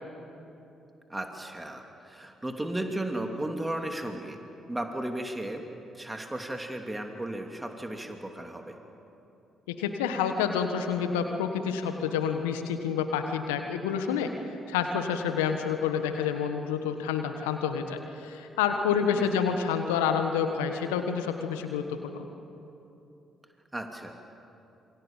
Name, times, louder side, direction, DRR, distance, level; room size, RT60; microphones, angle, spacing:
voice 1, 1.1-4.4 4.7-5.6 5.9-8.8 19.3-19.4 23.7-24.1, right 1 dB, 15° right, 3 dB, 2.8 m, -35 dB
voice 2, 9.7-14.3 14.7-22.2, left 7 dB, 80° left, 6 dB, 1.4 m, -28 dB
27.5 x 24.5 x 7.4 m, 2.9 s
hypercardioid pair, 45°, 0 cm